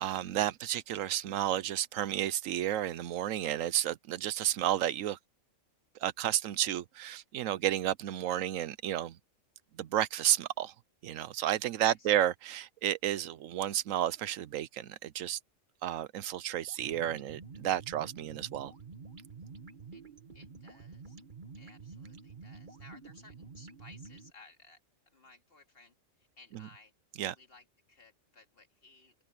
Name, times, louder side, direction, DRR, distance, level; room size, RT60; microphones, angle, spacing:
voice 1, 0.0-5.2 6.0-9.2 9.8-10.7 11.0-15.4 15.8-18.7 26.5-26.7 27.2-27.3, right 12 dB, 80° right, 1.0 m, -32 dB
sound 1, 16.7-24.3, right 4 dB, 40° right, 1.8 m, -49 dB
voice 2, 20.3-21.2 21.6-24.8 25.1-26.9 27.3-29.1, left 3 dB, 45° left, 2.5 m, -58 dB
open air
omnidirectional pair, 1.4 m